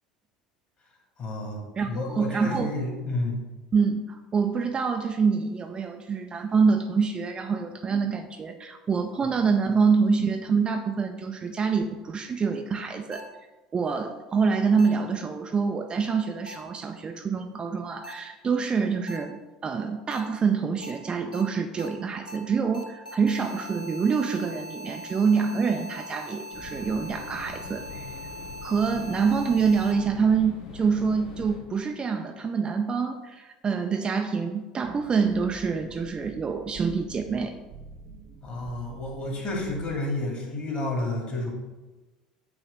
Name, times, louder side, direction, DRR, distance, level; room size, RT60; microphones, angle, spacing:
voice 1, 1.2-3.4 38.4-41.5, left 2 dB, 35° left, 0 dB, 2.0 m, -31 dB
voice 2, 1.8-2.7 3.7-13.2 13.7-28.1 28.6-37.5, right 5 dB, 25° right, 5 dB, 0.4 m, -26 dB
sound 1, 13.1-13.2 14.8-14.9 16.5-16.6 18.0-18.1 19.1-19.2 20.1-20.2 20.8-20.9 21.3-21.4 21.8-21.9 22.3-22.4 22.7-29.9, left 1 dB, 90° left, 0.6 m, -41 dB
sound 2, 26.5-31.6, left 3 dB, 60° left, 1.9 m, -43 dB
sound 3, 34.8-40.0, right 5 dB, 45° right, 1.0 m, -46 dB
8.2 x 3.0 x 5.1 m, 1.1 s
figure-of-eight pair, 70°, 4 cm